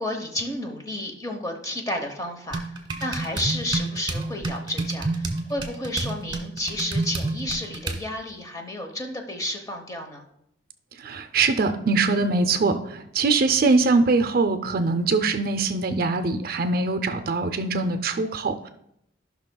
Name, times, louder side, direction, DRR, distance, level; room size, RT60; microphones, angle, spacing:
voice 1, 0.0-2.6 3.0-10.3, left 1 dB, 20° left, 3 dB, 0.9 m, -31 dB
sound 1, 2.5-8.1, right 2 dB, 25° right, 1.2 m, -30 dB
voice 2, 11.0-18.7, right 3 dB, 50° right, 8 dB, 0.5 m, -22 dB
14.5 x 5.9 x 2.3 m, 0.77 s
head